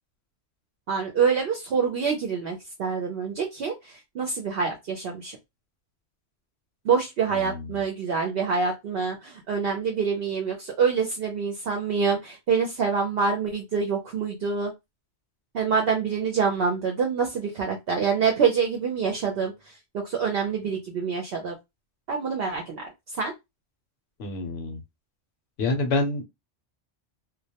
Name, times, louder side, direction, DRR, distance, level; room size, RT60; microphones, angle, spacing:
voice 1, 0.9-5.4 6.8-14.7 15.5-21.6 22.1-23.3, right 5 dB, 65° right, 0.7 m, -26 dB
voice 2, 7.4-7.8 24.2-24.8 25.6-26.2, left 2 dB, 65° left, 0.8 m, -27 dB
2.2 x 2.1 x 2.7 m
omnidirectional pair, 1.2 m